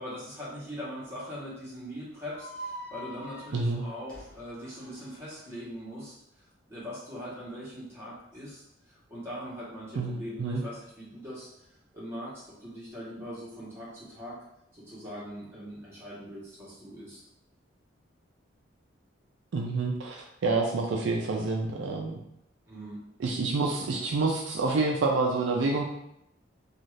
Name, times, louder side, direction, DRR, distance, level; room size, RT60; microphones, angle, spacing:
voice 1, 0.0-8.6 8.9-11.7 11.9-14.4 14.7-17.2 22.7-23.0, equal, 15° right, -8 dB, 1.1 m, -41 dB
sound 1, 2.3-5.5, right 1 dB, 5° left, 0.7 m, -44 dB
voice 2, 3.5-3.8 10.0-10.6 19.5-22.2 23.2-25.9, right 3 dB, 70° right, 0 dB, 0.4 m, -28 dB
2.6 x 2.3 x 3.2 m, 0.79 s
head